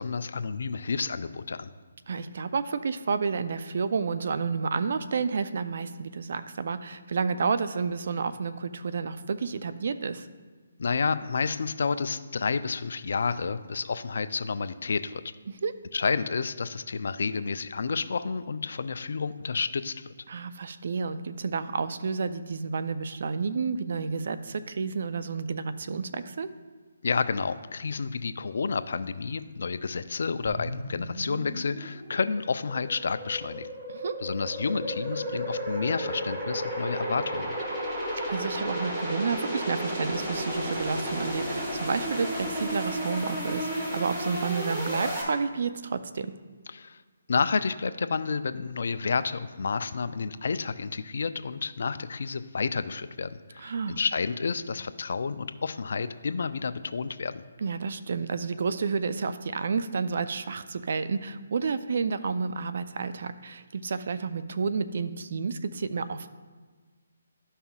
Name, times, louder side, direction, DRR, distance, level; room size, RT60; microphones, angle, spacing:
voice 1, 0.0-1.7 10.8-15.2 15.9-20.1 27.0-33.7 34.2-37.6 46.7-47.0 47.3-57.3, left 5 dB, 65° left, 12 dB, 0.4 m, -30 dB
voice 2, 2.1-10.3 15.6-15.7 20.3-26.5 33.9-34.2 38.3-46.3 53.6-54.0 57.6-66.3, right 5 dB, 60° right, 12 dB, 0.5 m, -30 dB
sound 1, 30.5-45.2, equal, 15° right, 2.2 m, -33 dB
12.5 x 5.5 x 2.4 m, 1.4 s
hypercardioid pair, 160°, 0 cm